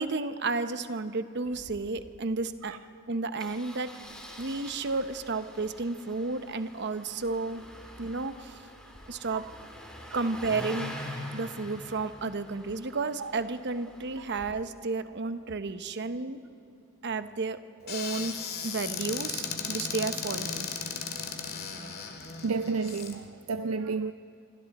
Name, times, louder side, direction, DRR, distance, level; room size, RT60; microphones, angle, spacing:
voice 1, 0.0-2.8 3.1-3.9 4.4-7.6 8.0-8.6 9.1-9.5 10.1-10.9 11.3-16.4 17.0-18.3 18.6-20.7, right 3 dB, 50° right, 0.9 m, -32 dB
Engine starting, 1.5-1.7 2.0-2.1 2.3-2.5 3.4-14.5, left 1 dB, 5° left, 2.7 m, -45 dB
Squeak / Cupboard open or close, 17.9-23.1, left 6 dB, 45° left, 2.1 m, -36 dB
voice 2, 22.4-24.1, right 4 dB, 70° right, 0.5 m, -32 dB
27.5 x 24.0 x 4.2 m
head